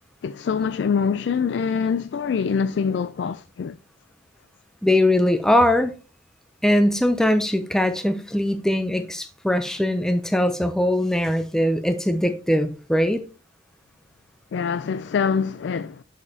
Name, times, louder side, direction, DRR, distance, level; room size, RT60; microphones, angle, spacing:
voice 1, 0.2-3.8 14.5-16.0, left 6 dB, 70° left, 0.3 m, -24 dB
voice 2, 4.8-5.9 6.6-13.2, left 1 dB, 5° left, 0.4 m, -21 dB
10.5 x 5.0 x 2.7 m
head